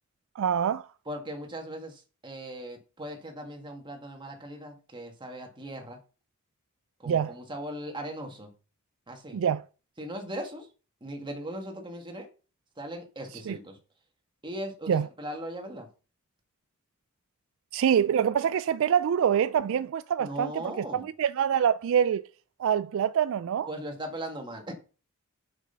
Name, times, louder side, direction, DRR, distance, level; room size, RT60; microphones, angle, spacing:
voice 1, 0.4-0.9 7.1-7.3 9.3-9.6 13.5-13.6 14.9-15.1 17.7-20.5 20.8-22.2 22.6-23.7, right 8 dB, 65° right, 0.3 m, -25 dB
voice 2, 1.1-6.0 7.0-8.5 9.1-9.4 10.0-10.7 11.0-12.3 12.8-13.8 14.4-15.9 20.2-21.1 23.7-24.7, right 1 dB, 20° right, 1.8 m, -39 dB
6.2 x 6.1 x 5.6 m
head